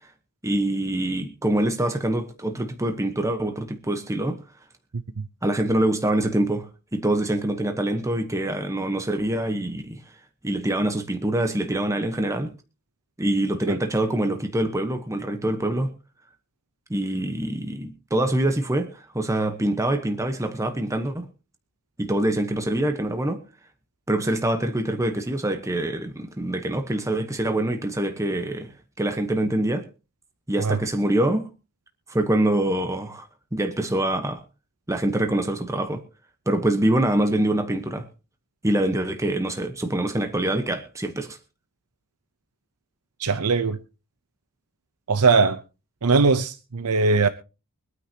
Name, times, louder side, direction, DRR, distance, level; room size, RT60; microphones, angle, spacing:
voice 1, 0.4-4.4 5.4-10.0 10.4-12.5 13.2-15.9 16.9-21.3 22.0-23.4 24.1-28.7 29.0-29.8 30.5-31.5 32.1-34.4 34.9-36.0 36.5-38.1 38.6-41.4, right 1 dB, 15° right, 1.1 m, -25 dB
voice 2, 43.2-43.8 45.1-45.6 46.0-47.3, right 4 dB, 85° right, 0.8 m, -20 dB
24.0 x 9.5 x 2.9 m
head